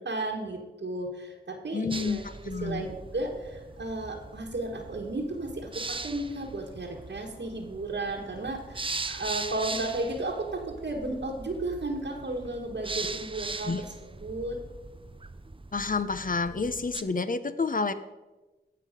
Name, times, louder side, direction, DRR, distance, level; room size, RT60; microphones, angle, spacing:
voice 1, 0.0-2.2 2.6-14.6, right 2 dB, 85° right, 0 dB, 1.4 m, -34 dB
voice 2, 1.7-2.9 13.7-13.8 15.7-17.9, left 4 dB, 50° left, 12 dB, 0.8 m, -29 dB
sound 1, 1.9-17.0, right 3 dB, 30° right, 0.6 m, -40 dB
16.0 x 5.8 x 5.0 m, 1.1 s
wide cardioid pair, 50°, 18 cm